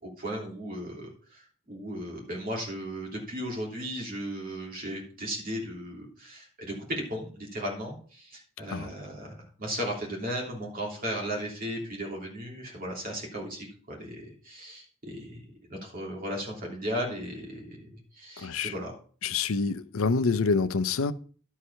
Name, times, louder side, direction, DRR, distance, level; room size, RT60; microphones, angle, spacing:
voice 1, 0.0-15.4 15.7-17.9 18.1-18.9, equal, 45° right, 3.1 m, -36 dB
voice 2, 18.4-18.7 19.2-21.1, left 4 dB, 85° left, 0.6 m, -27 dB
11.5 x 4.8 x 5.6 m
head